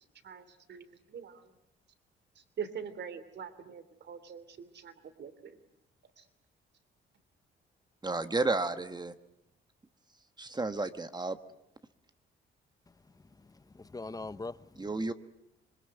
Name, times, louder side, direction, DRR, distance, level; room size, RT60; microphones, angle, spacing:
voice 1, 0.2-1.5 2.3-5.6 6.2-6.3, right 7 dB, 60° right, 12 dB, 3.0 m, -44 dB
voice 2, 8.0-9.1 10.4-11.4 14.8-15.1, right 3 dB, 20° right, 10 dB, 1.3 m, -32 dB
voice 3, 13.4-15.1, left 3 dB, 20° left, 15 dB, 1.0 m, -43 dB
26.0 x 21.5 x 9.2 m, 0.81 s
cardioid pair, 90°, 20 cm